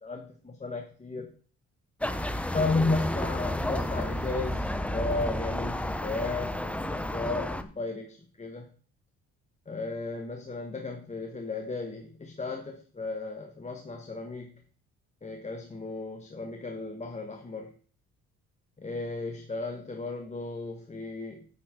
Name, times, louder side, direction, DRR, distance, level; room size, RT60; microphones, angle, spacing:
voice 1, 0.0-1.3 2.5-8.7 9.7-14.6 15.2-17.7 18.8-21.5, left 3 dB, 25° left, 3 dB, 1.2 m, -34 dB
sound 1, 2.0-7.6, left 1 dB, 5° left, 0.7 m, -31 dB
9.0 x 8.6 x 3.7 m, 0.44 s
cardioid pair, 90°, 30 cm